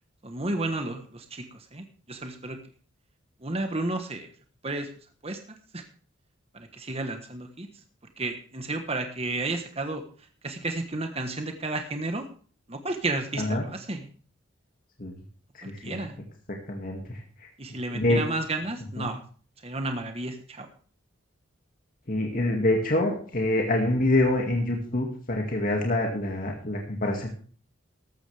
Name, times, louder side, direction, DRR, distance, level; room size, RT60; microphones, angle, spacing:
voice 1, 0.2-2.6 3.4-4.3 4.6-4.9 5.2-5.4 5.7-5.8 6.5-7.7 8.2-10.0 10.4-12.2 12.7-14.1 15.6-16.1 17.6-19.2 19.6-20.7, right 2 dB, 30° right, 6 dB, 1.3 m, -32 dB
voice 2, 15.7-16.0 16.7-17.2 17.9-18.2 19.0-19.1 22.1-27.3, left 1 dB, 45° left, 1 dB, 2.2 m, -26 dB
14.5 x 12.0 x 3.4 m, 0.42 s
head